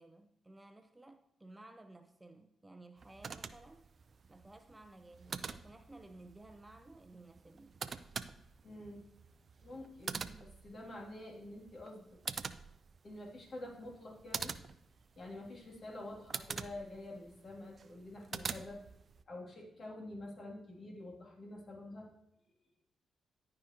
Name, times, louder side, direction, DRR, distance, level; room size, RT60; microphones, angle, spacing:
voice 1, 0.0-3.8 4.3-7.8, right 2 dB, 15° right, 0.7 m, -56 dB
sound 1, 3.0-19.2, right 5 dB, 50° right, 0.4 m, -46 dB
voice 2, 8.6-9.0 9.6-12.2 13.0-14.5 15.2-18.8 19.3-22.1, left 1 dB, 50° left, 2.8 m, -48 dB
13.5 x 5.0 x 3.0 m
hypercardioid pair, 45°, 0 cm